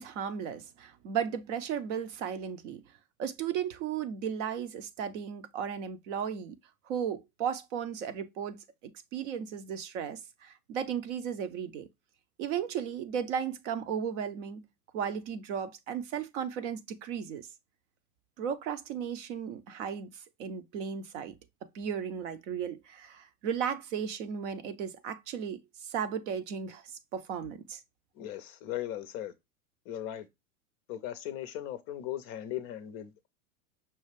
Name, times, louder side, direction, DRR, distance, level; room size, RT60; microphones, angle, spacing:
voice 1, 0.0-2.8 3.2-6.6 6.9-11.9 12.4-14.6 14.9-17.5 18.4-21.4 21.7-26.8 27.1-27.8, right 8 dB, 55° right, 0.7 m, -35 dB
voice 2, 28.2-29.3 29.9-30.3 30.9-33.3, left 12 dB, 30° left, 0.5 m, -38 dB
5.5 x 2.3 x 3.2 m
hypercardioid pair, 100°, 44 cm